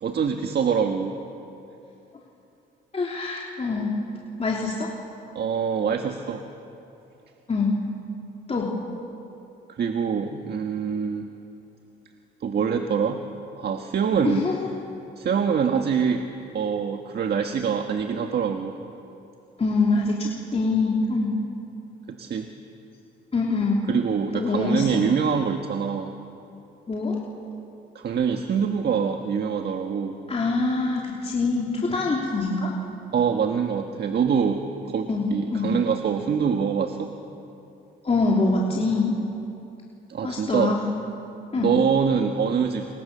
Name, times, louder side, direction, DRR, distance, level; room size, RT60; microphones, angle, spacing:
voice 1, 0.0-1.2 5.3-6.4 9.7-11.2 12.4-13.2 13.6-14.5 15.2-16.3 16.5-18.8 22.1-22.5 23.9-26.1 27.9-30.2 33.1-37.1 40.1-40.8 41.5-43.0, right 6 dB, 55° right, 5 dB, 1.6 m, -24 dB
voice 2, 2.9-3.9 4.4-4.9 7.5-7.7 8.5-8.7 14.2-14.7 19.6-21.4 23.3-23.9 24.3-25.0 26.9-27.2 30.3-32.7 35.1-35.7 38.0-39.2 40.2-40.9 41.5-41.7, left 3 dB, 30° left, -3 dB, 3.3 m, -24 dB
28.0 x 24.5 x 6.9 m, 2.8 s
cardioid pair, 90°, 20 cm